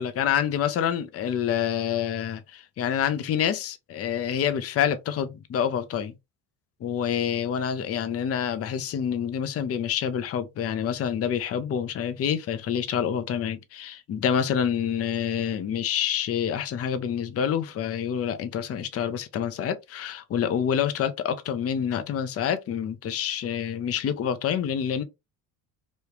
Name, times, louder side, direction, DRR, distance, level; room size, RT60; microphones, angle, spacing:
voice 1, 0.0-6.1 6.8-25.0, left 8 dB, 35° left, 0.6 m, -27 dB
3.1 x 2.3 x 3.1 m
supercardioid pair, 75°, 42 cm